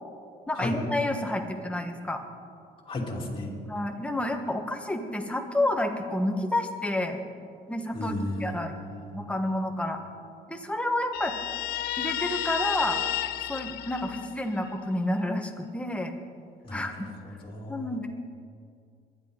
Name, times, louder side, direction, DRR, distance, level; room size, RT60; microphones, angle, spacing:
voice 1, 0.5-2.2 3.7-7.2 7.7-8.8 9.1-10.0 10.5-11.3 12.0-13.0 13.4-16.1 16.7-17.1 17.7-18.1, left 1 dB, 5° left, 4 dB, 1.4 m, -29 dB
voice 2, 2.9-3.5 7.9-9.1 16.6-16.9 17.2-17.9, left 1 dB, 30° left, -2 dB, 3.4 m, -34 dB
Guitar, 11.1-14.7, left 13 dB, 70° left, 0.5 m, -32 dB
22.0 x 11.0 x 4.0 m, 2.3 s
cardioid pair, 110°, 17 cm